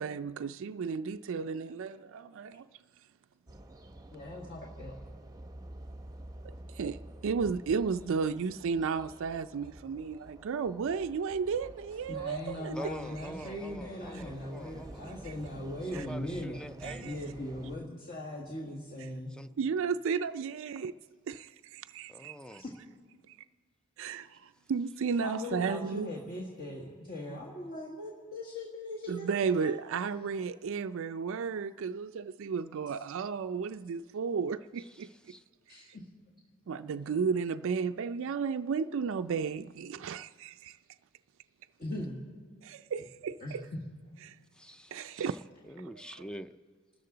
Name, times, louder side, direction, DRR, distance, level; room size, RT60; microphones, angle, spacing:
voice 1, 0.0-2.7 6.4-12.8 16.8-17.1 19.6-20.9 21.3-22.4 23.3-23.4 24.0-26.1 29.1-35.1 36.7-40.8 42.6-43.6 44.3-44.4 44.9-45.4, right 5 dB, 65° right, 0.4 m, -33 dB
sound 1, 3.5-17.8, right 1 dB, 20° right, 0.7 m, -49 dB
voice 2, 4.1-5.0 12.1-19.3 22.6-22.7 25.2-29.7 35.7-36.1 41.8-42.2 43.4-43.6, left 1 dB, 45° left, 1.7 m, -40 dB
voice 3, 12.7-15.0 15.9-17.2 19.3-19.5 22.1-22.6 34.8-35.4 44.5-45.4 45.6-46.6, equal, 5° left, 0.4 m, -45 dB
27.5 x 13.5 x 3.9 m
head